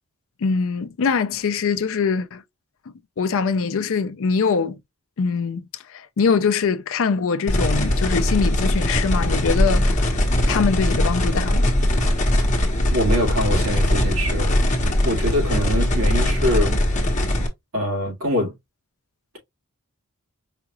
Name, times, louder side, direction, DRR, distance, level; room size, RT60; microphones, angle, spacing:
voice 1, 0.4-2.4 3.2-4.8 5.2-5.6 5.9-10.1 10.5-11.7, left 5 dB, 65° left, 0.5 m, -23 dB
sound 1, 7.5-17.5, left 1 dB, 35° left, 1.1 m, -20 dB
voice 2, 12.9-14.6 15.0-16.8 17.7-18.5, equal, 65° right, 2.0 m, -24 dB
4.9 x 2.4 x 2.9 m
head